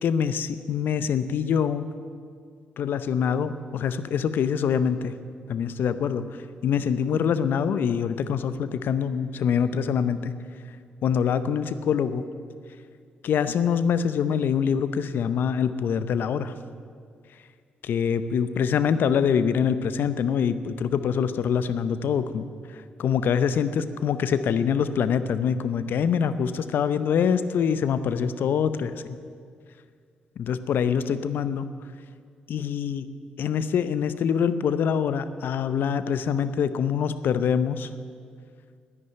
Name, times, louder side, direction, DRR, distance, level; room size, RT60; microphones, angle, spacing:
voice 1, 0.0-1.8 2.8-5.1 5.5-6.2 6.6-10.3 11.0-12.2 13.2-16.5 17.8-22.5 23.0-29.2 30.4-31.7 32.5-33.1 33.4-37.9, left 7 dB, 70° left, 13 dB, 0.7 m, -24 dB
10.5 x 9.7 x 9.1 m, 2.1 s
hypercardioid pair, 45°, 4 cm